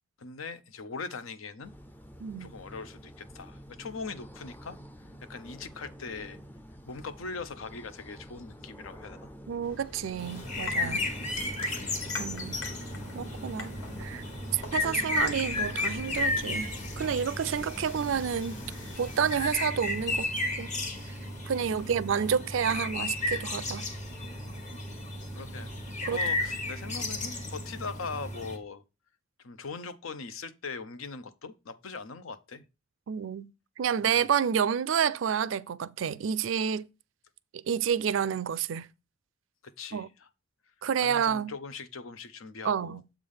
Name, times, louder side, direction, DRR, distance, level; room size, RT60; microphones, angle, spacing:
voice 1, 0.2-1.7 2.4-4.8 5.2-6.4 6.8-9.3 10.8-11.3 21.6-22.0 22.7-22.8 25.3-25.7 26.0-28.8 29.4-32.6 34.0-34.3 39.6-40.3 41.0-43.0, left 4 dB, 85° left, 0.7 m, -41 dB
sound 1, 1.6-20.2, equal, 10° left, 0.4 m, -48 dB
voice 2, 2.2-2.5 9.5-11.1 12.2-12.6 13.1-13.7 14.0-14.2 14.5-16.7 17.0-18.6 19.0-20.3 20.6-20.7 21.5-23.9 26.0-26.2 33.1-33.5 33.8-36.9 37.5-38.9 39.9-40.1 40.8-41.5 42.6-43.0, right 7 dB, 70° right, 0.4 m, -29 dB
sound 2, 9.6-19.5, left 2 dB, 70° left, 1.7 m, -44 dB
sound 3, 10.2-28.6, left 2 dB, 35° left, 1.1 m, -34 dB
7.3 x 3.4 x 5.5 m
head